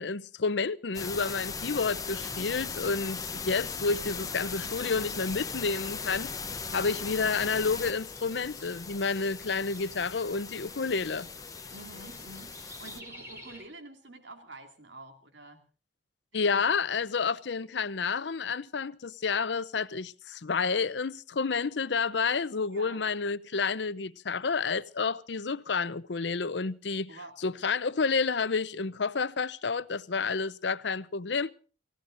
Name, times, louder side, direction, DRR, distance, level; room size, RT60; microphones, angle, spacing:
voice 1, 0.0-6.3 6.7-11.3 16.3-31.5, left 4 dB, 70° left, 0.7 m, -30 dB
sound 1, 0.9-13.0, left 5 dB, 20° left, 0.9 m, -38 dB
sound 2, 4.2-13.6, equal, 15° right, 3.4 m, -51 dB
voice 2, 11.7-15.6 16.3-16.6 22.7-23.0 27.1-27.4, right 2 dB, 80° right, 2.5 m, -48 dB
30.0 x 16.0 x 2.6 m
head